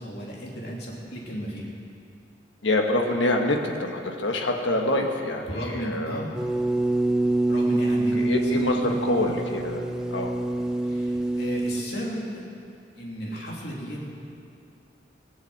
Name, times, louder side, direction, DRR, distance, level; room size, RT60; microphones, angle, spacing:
voice 1, 0.0-1.7 5.4-6.4 7.5-9.3 10.8-12.4 13.0-14.1, equal, 60° left, -3 dB, 2.9 m, -34 dB
voice 2, 2.6-6.2 8.2-9.8 10.1-10.3, left 2 dB, 85° left, 2 dB, 1.5 m, -26 dB
sound 1, 6.3-11.8, right 2 dB, 5° right, 0.6 m, -25 dB
19.0 x 7.2 x 7.9 m, 2.6 s
head